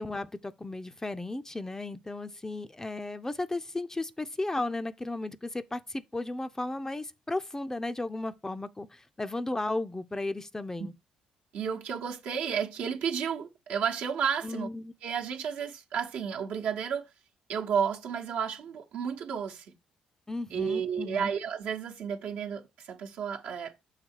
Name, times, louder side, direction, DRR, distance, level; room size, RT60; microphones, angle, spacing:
voice 1, 0.0-10.9 14.4-14.9 20.3-21.3, left 2 dB, 15° left, 0.6 m, -35 dB
voice 2, 11.5-14.7 15.0-17.1 17.5-19.7 20.5-23.7, right 7 dB, 60° right, 1.0 m, -32 dB
6.6 x 3.5 x 4.6 m
figure-of-eight pair, 45°, 3 cm